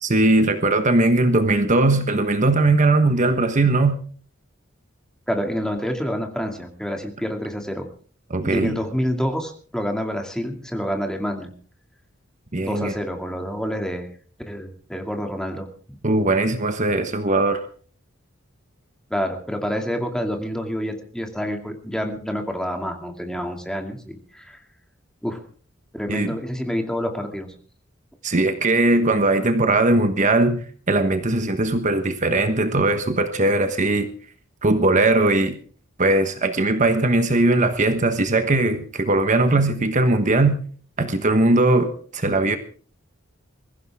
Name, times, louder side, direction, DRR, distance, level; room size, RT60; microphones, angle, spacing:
voice 1, 0.0-4.0 8.3-8.8 12.5-12.9 16.0-17.6 26.1-26.3 28.2-34.1 34.6-35.6 36.0-40.6 41.0-42.6, right 2 dB, 40° right, 8 dB, 1.2 m, -19 dB
voice 2, 5.3-7.9 8.4-11.5 12.6-14.1 14.5-15.7 19.1-24.6 25.2-25.4 25.9-27.5, equal, 5° left, 3 dB, 2.4 m, -28 dB
22.5 x 15.5 x 3.6 m, 0.44 s
head